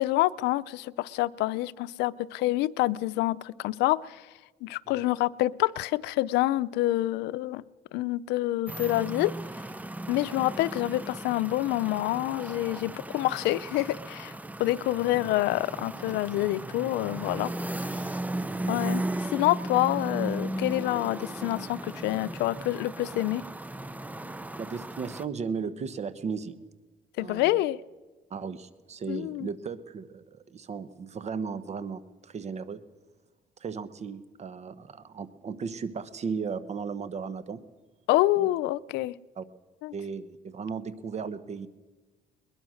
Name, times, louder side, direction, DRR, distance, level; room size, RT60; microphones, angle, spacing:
voice 1, 0.0-4.3 4.6-7.6 7.9-9.3 10.1-17.5 18.7-23.4 27.2-27.8 29.1-29.5 38.1-39.1 39.8-39.9, left 16 dB, 90° left, 16 dB, 0.6 m, -27 dB
sound 1, 8.7-25.3, right 1 dB, 10° right, 0.7 m, -36 dB
voice 2, 24.6-26.6 27.2-27.6 28.3-32.8 33.6-37.6 38.4-38.5 39.4-39.5 39.9-41.7, right 5 dB, 40° right, 14 dB, 1.2 m, -36 dB
22.0 x 21.0 x 6.4 m, 1.2 s
cardioid pair, 110°, 17 cm